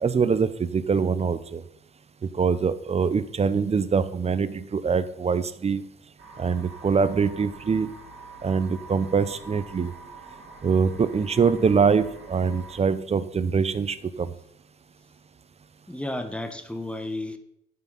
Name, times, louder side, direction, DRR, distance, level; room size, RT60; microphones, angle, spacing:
voice 1, 0.0-1.6 2.3-5.8 6.4-7.9 8.4-9.9 10.6-14.3, right 5 dB, 30° right, 15 dB, 0.7 m, -24 dB
sound 1, 6.2-12.8, right 3 dB, 85° right, 2.9 m, -45 dB
voice 2, 15.9-17.4, left 1 dB, 5° left, 8 dB, 1.3 m, -32 dB
11.5 x 5.8 x 5.5 m, 0.77 s
cardioid pair, 90°, 20 cm